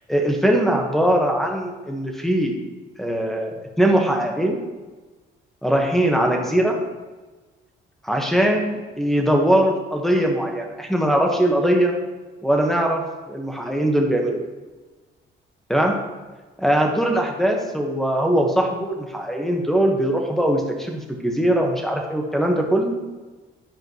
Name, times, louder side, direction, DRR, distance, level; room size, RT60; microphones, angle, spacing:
voice 1, 0.1-2.5 3.0-4.6 5.6-6.7 8.0-11.9 12.4-14.5 15.7-16.0 16.6-23.0, right 1 dB, ahead, 2 dB, 1.4 m, -21 dB
10.5 x 5.0 x 3.1 m, 1.3 s
cardioid pair, 90°, 20 cm